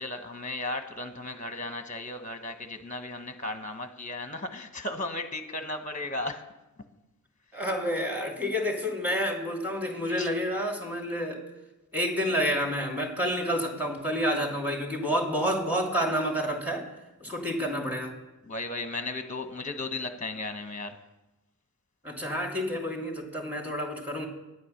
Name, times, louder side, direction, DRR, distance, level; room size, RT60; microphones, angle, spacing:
voice 1, 0.0-6.4 10.1-10.3 18.5-21.0, left 2 dB, 20° left, 7 dB, 1.0 m, -35 dB
voice 2, 7.5-11.4 11.9-16.9 17.2-18.1 22.0-24.3, equal, 5° right, 1 dB, 2.6 m, -29 dB
9.6 x 8.4 x 6.5 m, 1.0 s
wide cardioid pair, 40°, 37 cm